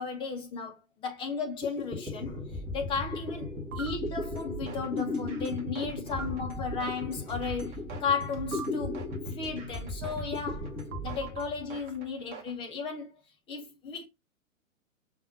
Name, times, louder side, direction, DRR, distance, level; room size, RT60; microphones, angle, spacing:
voice 1, 0.0-7.7 8.0-10.7 11.0-13.1 13.5-14.1, left 5 dB, 15° left, 0.7 m, -35 dB
sound 1, 1.3-1.4 1.6-12.1, left 2 dB, 10° right, 1.0 m, -36 dB
sound 2, 3.7-3.9 6.1-6.3 8.5-8.7 10.9-11.4, right 8 dB, 70° right, 0.8 m, -39 dB
sound 3, 4.0-12.5, right 5 dB, 35° right, 1.0 m, -45 dB
5.7 x 2.5 x 2.7 m
figure-of-eight pair, 115°, 41 cm